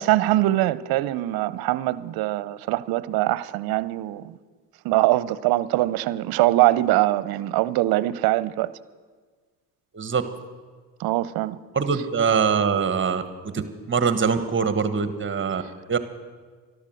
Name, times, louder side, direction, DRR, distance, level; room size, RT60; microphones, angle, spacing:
voice 1, 0.0-4.3 4.8-8.7 11.0-11.6, right 16 dB, 70° right, 0.7 m, -22 dB
voice 2, 11.7-13.2 13.5-13.6 13.9-15.6 15.9-16.0, right 6 dB, 30° right, 1.3 m, -23 dB
12.5 x 12.0 x 7.8 m
supercardioid pair, 90°, 39 cm